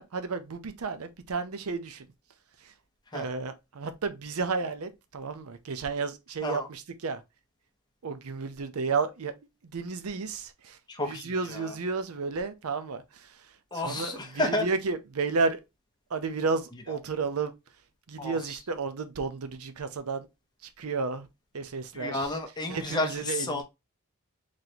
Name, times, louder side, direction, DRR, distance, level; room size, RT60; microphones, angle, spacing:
voice 1, 0.0-2.1 2.6-2.7 3.1-7.2 8.0-9.3 9.6-13.4 13.7-15.6 16.1-17.5 18.1-20.3 20.8-21.3 21.5-22.3 22.7-23.6, right 4 dB, 85° right, 0.6 m, -32 dB
voice 2, 10.9-11.7 13.7-14.7 18.2-18.4 21.9-23.6, left 2 dB, 20° left, 0.8 m, -31 dB
4.0 x 3.2 x 2.8 m
head